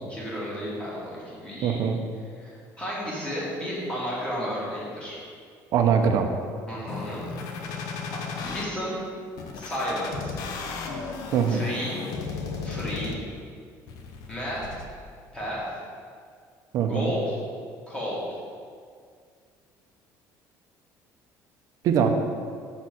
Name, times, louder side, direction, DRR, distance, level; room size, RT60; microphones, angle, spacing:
voice 1, 0.1-1.9 2.3-5.2 6.7-7.2 8.4-8.9 9.5-10.3 11.5-12.0 12.6-13.2 14.3-14.7 15.3-15.7 16.9-17.4 17.9-18.2, equal, 15° left, -7 dB, 1.9 m, -32 dB
voice 2, 1.6-2.0 5.7-6.3 11.3-11.7 16.7-17.1 21.8-22.1, right 7 dB, 55° right, 5 dB, 0.7 m, -22 dB
sound 1, 6.9-8.6 9.4-13.4 13.9-14.9, left 4 dB, 65° left, 0.7 m, -35 dB
6.0 x 4.3 x 6.1 m, 2.1 s
cardioid pair, 160°, 7 cm